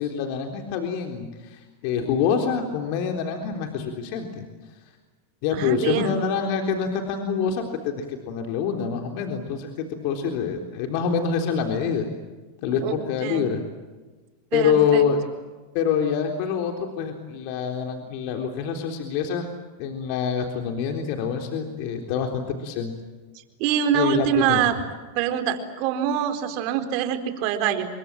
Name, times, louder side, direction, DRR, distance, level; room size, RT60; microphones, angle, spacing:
voice 1, 0.0-4.4 5.4-12.1 12.6-13.6 14.5-15.2 15.7-19.4 19.8-22.9 23.9-24.6, left 7 dB, 60° left, 4 dB, 3.8 m, -26 dB
voice 2, 5.5-6.2 12.8-12.9 13.2-13.5 14.5-15.0 23.6-24.7 25.2-27.9, right 10 dB, 55° right, 8 dB, 4.2 m, -24 dB
29.0 x 23.5 x 7.6 m, 1.3 s
hypercardioid pair, 115°, 0 cm